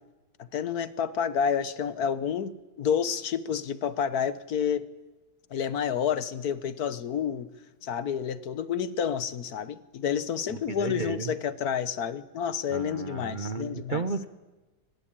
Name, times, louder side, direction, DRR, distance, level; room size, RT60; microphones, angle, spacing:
voice 1, 0.4-4.8 5.5-7.5 7.8-14.0, left 7 dB, 65° left, 14 dB, 1.5 m, -29 dB
voice 2, 10.5-11.3 12.7-14.3, right 4 dB, 40° right, 10 dB, 0.8 m, -33 dB
23.5 x 20.0 x 8.9 m, 1.1 s
omnidirectional pair, 1.8 m